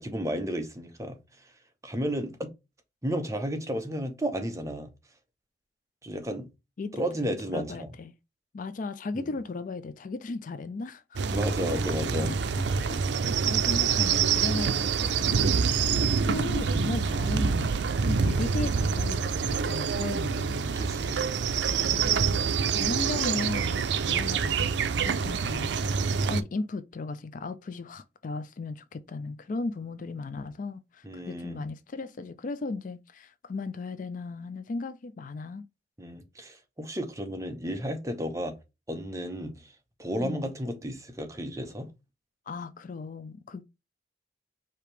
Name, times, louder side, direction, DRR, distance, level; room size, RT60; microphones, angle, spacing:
voice 1, 0.0-1.5 1.8-2.5 3.0-4.9 6.0-6.5 6.9-7.9 9.1-9.3 11.3-12.3 20.8-21.3 31.0-31.6 36.0-38.6 38.9-39.7 40.0-41.9, equal, 20° right, 0.9 m, -33 dB
voice 2, 7.5-8.1 8.5-11.0 12.0-20.7 21.8-35.6 40.2-40.5 42.5-43.6, left 3 dB, 50° left, 0.4 m, -36 dB
sound 1, 11.2-26.4, right 6 dB, 80° right, 0.4 m, -26 dB
4.9 x 2.8 x 3.2 m
head